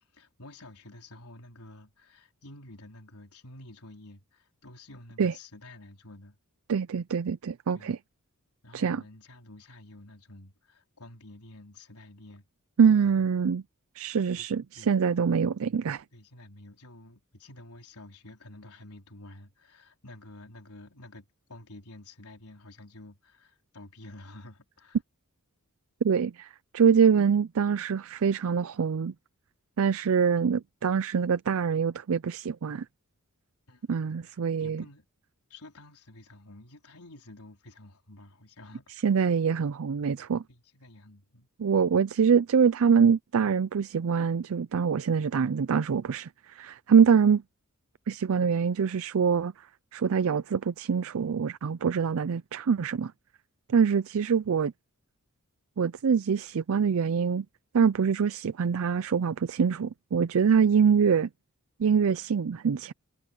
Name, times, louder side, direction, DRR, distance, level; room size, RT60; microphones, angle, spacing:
voice 1, 0.1-6.4 7.7-7.9 8.6-12.5 13.0-13.2 14.4-14.5 14.7-14.9 16.1-25.0 33.7-33.8 34.3-35.1 35.5-38.9 40.5-41.5 54.4-54.5, left 1 dB, 85° left, 4.2 m, -50 dB
voice 2, 6.7-8.0 8.7-9.0 12.8-13.6 14.0-16.0 26.0-29.1 29.8-32.8 33.9-34.8 39.0-40.4 41.6-47.4 48.1-49.5 49.9-53.1 53.7-54.7 55.8-57.5 57.7-61.3 61.8-62.9, right 6 dB, 65° right, 0.4 m, -24 dB
head